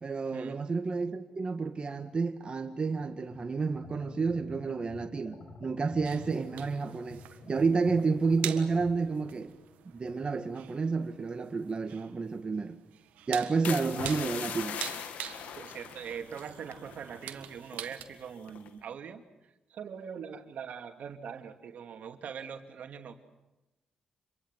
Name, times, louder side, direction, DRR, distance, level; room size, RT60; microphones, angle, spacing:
voice 1, 0.0-9.5 9.9-12.8 13.3-14.8, right 4 dB, 40° right, 1.7 m, -30 dB
sound 1, 3.1-10.5, left 3 dB, 60° left, 5.3 m, -50 dB
sound 2, 6.0-18.0, right 11 dB, 90° right, 1.6 m, -45 dB
sound 3, 13.6-17.4 17.6-18.0 18.5-18.8, left 8 dB, 85° left, 2.0 m, -40 dB
voice 2, 15.4-19.2 19.7-23.1, right 7 dB, 70° right, 2.5 m, -42 dB
27.5 x 23.0 x 7.5 m
cardioid pair, 65°, 3 cm